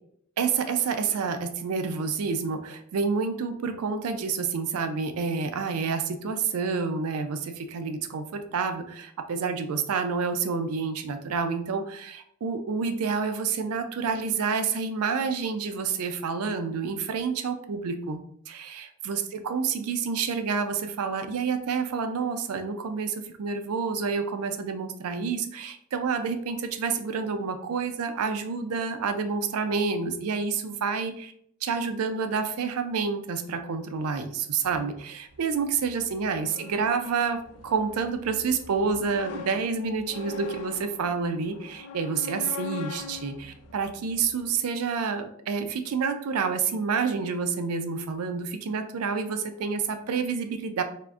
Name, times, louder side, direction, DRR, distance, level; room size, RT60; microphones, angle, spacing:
voice 1, 0.4-18.2 18.5-31.3 31.6-50.8, right 5 dB, 80° right, 8 dB, 0.4 m, -29 dB
sound 1, 34.6-44.6, left 5 dB, 85° left, 0.4 m, -42 dB
3.5 x 2.5 x 2.4 m, 0.67 s
head